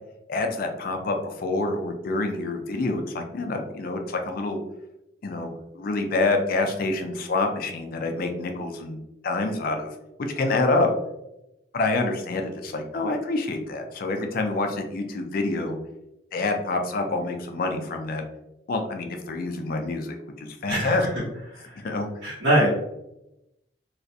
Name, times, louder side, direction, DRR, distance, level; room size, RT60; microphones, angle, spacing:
voice 1, 0.3-4.6 5.2-9.0 9.2-10.9 11.7-15.8 16.3-18.2 18.7-21.1 21.8-22.1, left 2 dB, 50° left, 4 dB, 0.4 m, -27 dB
voice 2, 22.2-22.7, right 1 dB, 80° right, -9 dB, 0.9 m, -22 dB
2.4 x 2.1 x 2.6 m, 0.88 s
head